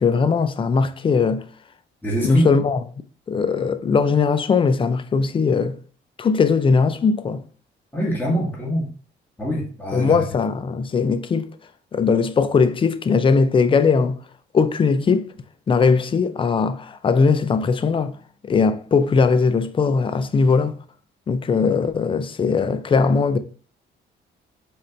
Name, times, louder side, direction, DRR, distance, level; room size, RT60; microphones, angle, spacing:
voice 1, 0.0-1.5 2.2-2.8 3.3-5.8 6.2-7.4 9.9-11.5 11.9-14.2 14.5-15.3 15.7-18.1 18.4-20.8 21.3-23.4, left 5 dB, 25° left, 0.4 m, -19 dB
voice 2, 2.0-2.5 7.9-8.8 9.4-10.1, equal, 10° left, 1.2 m, -23 dB
4.2 x 2.5 x 3.2 m
cardioid pair, 90°, 20 cm